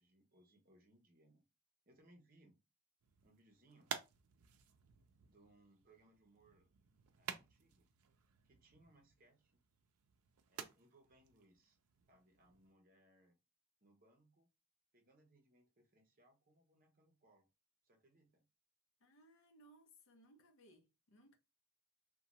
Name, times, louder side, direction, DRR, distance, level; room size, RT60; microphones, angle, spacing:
voice 1, 0.0-1.4 1.9-2.6 3.2-3.9 5.2-6.7 7.2-7.9 8.4-9.6 10.5-11.8 12.1-13.4 13.8-14.5 14.9-17.5 17.8-18.4, right 1 dB, 40° right, 0.7 m, -69 dB
sound 1, 3.0-12.7, right 7 dB, 90° right, 0.4 m, -53 dB
voice 2, 19.0-21.4, right 1 dB, 60° left, 0.5 m, -65 dB
2.7 x 2.2 x 2.8 m
head